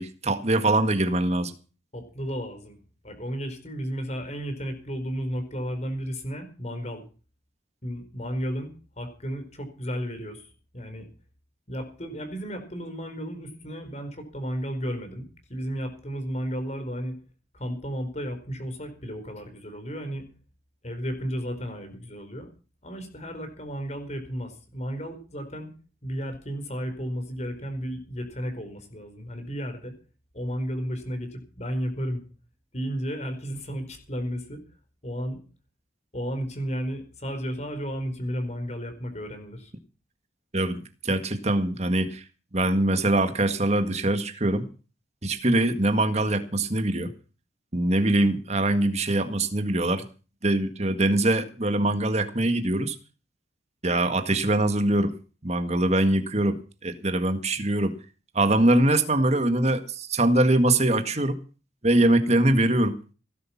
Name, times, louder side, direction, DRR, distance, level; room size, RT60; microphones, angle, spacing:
voice 1, 0.0-1.5 40.5-42.2 42.5-44.6 45.2-47.1 47.7-50.0 50.4-53.0 53.8-55.1 55.4-58.0 58.4-61.4 61.8-63.0, right 1 dB, 35° right, 9 dB, 1.8 m, -23 dB
voice 2, 1.9-2.8 3.0-7.0 7.8-8.7 9.0-11.1 11.7-17.1 17.5-20.2 20.8-22.5 22.8-25.7 26.0-29.9 30.3-32.2 32.7-34.6 35.0-35.4 36.1-39.7, equal, 35° left, 7 dB, 4.7 m, -33 dB
18.0 x 11.5 x 5.9 m, 0.35 s
head